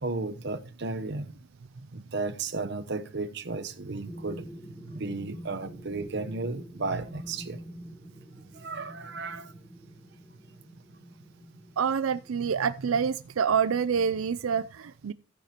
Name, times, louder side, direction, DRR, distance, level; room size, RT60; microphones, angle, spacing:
voice 1, 0.0-1.4 1.7-4.5 4.9-7.6 8.5-9.5, right 3 dB, 55° right, 0.9 m, -34 dB
sound 1, 4.1-13.1, equal, 5° left, 0.9 m, -47 dB
voice 2, 11.8-15.1, right 6 dB, 85° right, 0.4 m, -27 dB
15.0 x 9.1 x 3.0 m
head